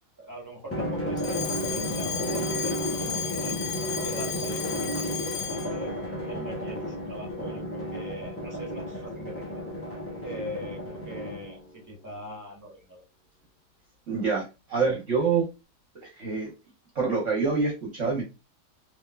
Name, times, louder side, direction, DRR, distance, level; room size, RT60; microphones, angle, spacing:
voice 1, 0.2-3.6 4.0-6.0 6.3-9.6 10.2-13.0, equal, 15° right, -1 dB, 1.1 m, -41 dB
Drum, 0.7-11.7, equal, 20° left, 0.4 m, -33 dB
Alarm, 1.2-5.8, left 8 dB, 85° left, 1.2 m, -34 dB
voice 2, 14.1-15.4 16.2-16.5 16.9-18.2, right 4 dB, 50° right, -2 dB, 1.2 m, -26 dB
3.6 x 2.8 x 2.3 m, 0.27 s
omnidirectional pair, 1.8 m